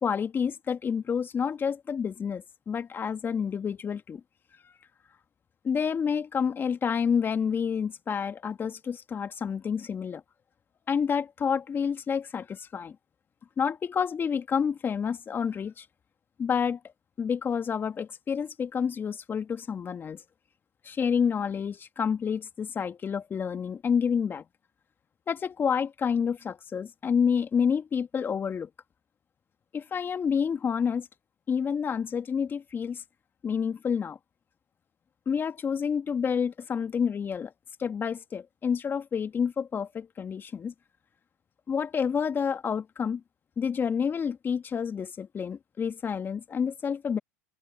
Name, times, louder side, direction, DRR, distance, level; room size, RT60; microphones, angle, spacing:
voice 1, 0.0-4.2 4.6-4.7 5.6-10.2 10.9-13.0 13.6-15.9 16.4-16.8 17.2-20.2 20.8-24.4 25.3-28.7 29.7-31.1 31.5-33.0 33.4-34.2 35.3-37.5 37.8-40.7 41.7-43.2 43.6-47.2, left 6 dB, 25° left, 2.0 m, -29 dB
hypercardioid pair, 95°, 9 cm